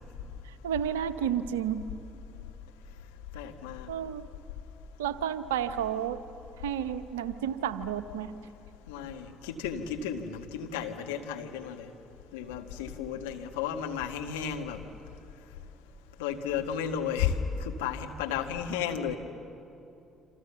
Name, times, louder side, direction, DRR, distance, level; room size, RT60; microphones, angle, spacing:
voice 1, 0.6-1.9 3.9-4.3 5.0-6.2 6.6-8.3, right 9 dB, 75° right, 13 dB, 0.8 m, -31 dB
voice 2, 3.3-3.9 8.9-11.9 12.3-14.8 16.2-17.3 17.6-19.2, left 8 dB, 75° left, 4 dB, 1.5 m, -33 dB
28.0 x 26.0 x 7.2 m, 2.8 s
figure-of-eight pair, 50°, 0 cm